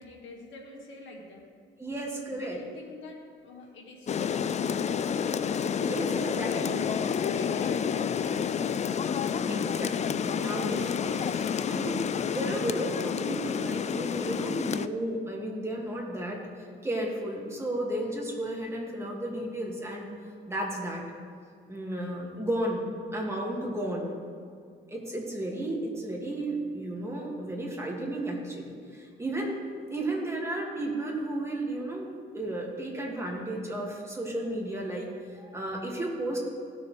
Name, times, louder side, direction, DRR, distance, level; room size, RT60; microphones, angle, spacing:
voice 1, 0.0-1.5 2.3-4.5 6.4-9.0, left 2 dB, 75° left, -1 dB, 2.1 m, -47 dB
voice 2, 1.8-2.6 5.8-6.8 9.4-20.1 20.5-21.0 21.7-22.8 23.1-24.2 24.9-29.6 29.9-36.4, right 1 dB, 15° right, -2 dB, 2.4 m, -33 dB
Rain, 4.1-14.9, left 7 dB, 35° left, 0.4 m, -29 dB
16.5 x 6.8 x 3.5 m, 2.2 s
cardioid pair, 90°, 20 cm